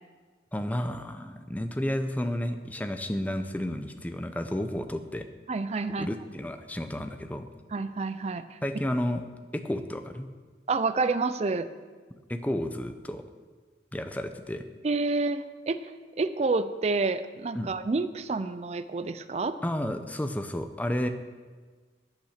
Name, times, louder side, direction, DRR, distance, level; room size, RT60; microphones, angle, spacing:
voice 1, 0.5-5.3 6.0-7.5 8.6-9.2 9.5-10.3 12.3-13.2 13.9-14.6 17.5-17.7 19.6-21.1, left 1 dB, 10° left, 7 dB, 0.6 m, -31 dB
voice 2, 5.5-6.1 7.7-8.6 10.7-11.7 14.8-15.9 16.2-19.6, right 3 dB, 35° right, 12 dB, 0.4 m, -28 dB
8.9 x 8.6 x 6.6 m, 1.4 s
head